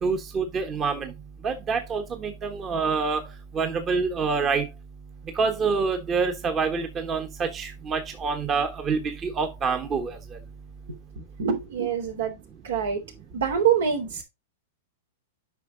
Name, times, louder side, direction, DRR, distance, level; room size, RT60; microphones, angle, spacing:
voice 1, 0.0-1.1 1.4-3.3 3.5-4.7 5.4-10.2, right 5 dB, 25° right, 1.3 m, -26 dB
voice 2, 11.4-12.4 12.6-13.0 13.3-14.2, right 8 dB, 80° right, 3.5 m, -25 dB
8.4 x 5.4 x 3.9 m
hypercardioid pair, 120°, 0 cm